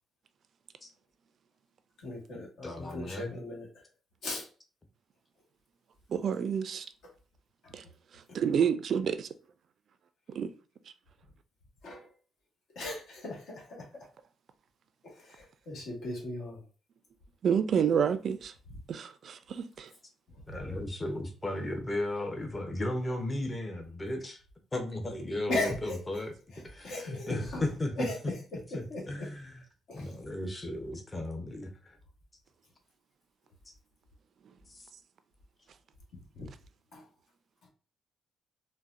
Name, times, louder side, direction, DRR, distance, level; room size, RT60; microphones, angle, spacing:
voice 1, 2.0-3.7 4.2-4.5 8.3-8.4 11.8-12.1 12.7-13.8 15.0-16.6 20.5-20.8 25.5-26.0 26.5-27.6 28.0-29.3 29.9-30.1 36.3-36.5 36.9-37.0, left 2 dB, 70° left, 1.4 m, -37 dB
voice 2, 2.6-3.4 20.5-24.4 24.7-26.3 26.6-28.1 28.7-29.6 29.9-32.0 33.7-33.8 34.7-34.9, left 1 dB, 20° left, 0.7 m, -35 dB
voice 3, 6.1-6.9 7.7-7.8 8.3-9.3 10.3-10.5 17.4-18.5 18.9-19.9, right 7 dB, 60° right, 0.3 m, -28 dB
4.0 x 2.1 x 2.5 m
cardioid pair, 90°, 0 cm